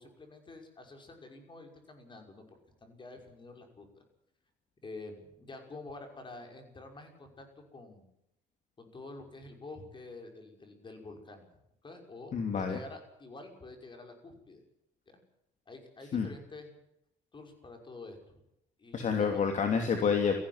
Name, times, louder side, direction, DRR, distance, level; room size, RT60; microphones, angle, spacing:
voice 1, 0.0-3.9 4.8-7.5 7.7-8.1 8.8-11.5 11.8-14.6 15.7-16.7 17.3-18.2 18.8-19.5, left 3 dB, 30° left, 4 dB, 5.8 m, -48 dB
voice 2, 12.3-12.8 16.1-16.3 18.9-20.3, left 6 dB, 45° left, 5 dB, 2.8 m, -28 dB
18.0 x 15.0 x 9.6 m, 0.78 s
cardioid pair, 110°, 17 cm